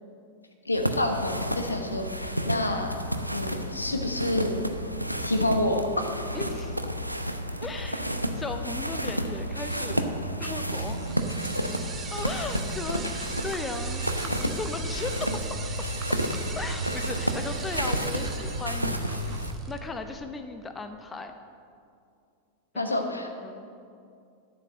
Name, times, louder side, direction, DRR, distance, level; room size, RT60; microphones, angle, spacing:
voice 1, 0.6-2.9 3.3-4.5 5.2-5.9 11.5-11.6 22.7-23.3, left 1 dB, 80° left, 4 dB, 1.1 m, -28 dB
sound 1, 0.7-19.5, equal, 90° right, 0.6 m, -31 dB
voice 2, 6.3-6.8 7.6-10.0 10.4-11.4 12.1-16.2 16.6-21.3 22.7-23.7, left 3 dB, 15° left, 7 dB, 0.8 m, -37 dB
sound 2, 10.7-19.8, right 4 dB, 20° right, 1.0 m, -38 dB
12.0 x 6.1 x 7.7 m, 2.4 s
figure-of-eight pair, 90°, 0 cm